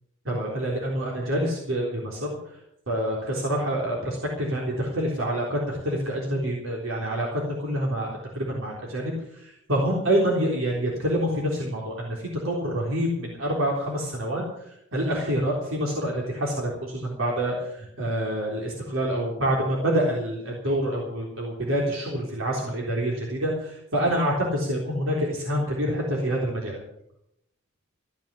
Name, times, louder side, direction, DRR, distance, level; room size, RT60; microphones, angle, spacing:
voice 1, 0.3-2.3 2.9-8.1 8.3-9.1 9.4-12.2 12.4-14.4 14.9-26.8, equal, 80° right, -2 dB, 3.8 m, -27 dB
15.5 x 9.5 x 8.6 m, 0.77 s
head